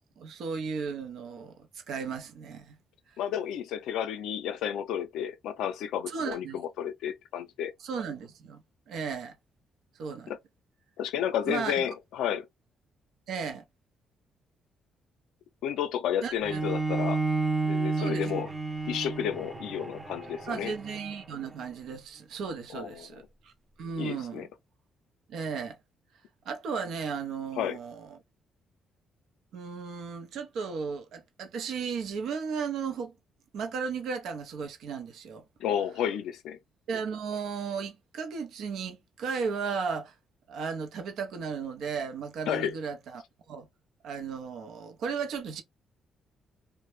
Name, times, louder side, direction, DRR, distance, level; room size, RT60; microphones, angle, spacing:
voice 1, 0.2-2.8 6.1-6.6 7.8-9.3 10.0-10.3 11.5-11.9 13.3-13.6 16.2-16.6 18.0-18.4 20.5-23.5 23.8-24.5 25.3-25.8 26.5-28.2 29.5-33.1 33.5-35.4 36.9-40.1 40.5-43.2 43.5-43.7 44.0-45.6, right 5 dB, 75° right, 0.6 m, -35 dB
voice 2, 3.2-7.7 10.3-10.4 11.0-12.5 15.6-17.2 17.6-18.5 18.9-20.7 22.7-23.2 23.9-24.5 27.6-27.8 35.6-36.6 42.5-42.7, left 9 dB, 85° left, 0.4 m, -31 dB
Bowed string instrument, 16.4-21.6, right 3 dB, 15° right, 0.5 m, -31 dB
2.1 x 2.0 x 2.9 m
cardioid pair, 90°, 0 cm